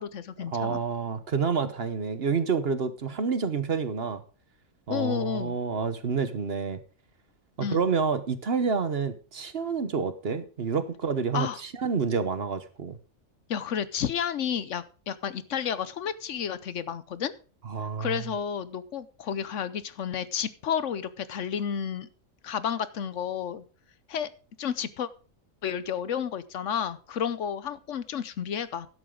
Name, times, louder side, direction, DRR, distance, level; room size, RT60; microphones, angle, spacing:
voice 1, 0.0-0.8 4.9-5.6 7.6-7.8 11.3-11.6 13.5-17.3 18.0-22.1 22.4-23.6 24.1-24.3 24.6-25.1 25.6-28.9, left 8 dB, 65° left, 15 dB, 1.0 m, -31 dB
voice 2, 0.5-4.2 4.9-6.8 7.6-13.0 17.6-18.3, right 5 dB, 50° right, 12 dB, 1.1 m, -28 dB
13.0 x 11.0 x 3.8 m, 0.36 s
omnidirectional pair, 1.4 m